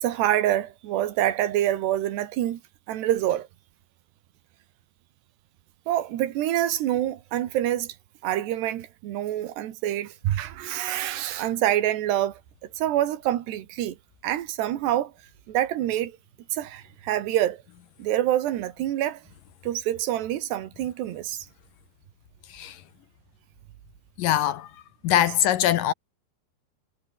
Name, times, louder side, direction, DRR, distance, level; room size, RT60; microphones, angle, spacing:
voice 1, 0.0-2.6 2.9-3.5 5.9-8.0 8.2-12.4 12.8-14.0 14.2-15.1 15.5-16.1 16.5-17.6 18.0-19.2 19.6-21.5, right 12 dB, 90° right, 3.8 m, -26 dB
voice 2, 24.2-24.7 25.0-25.9, left 11 dB, 70° left, 2.3 m, -22 dB
omnidirectional pair, 4.7 m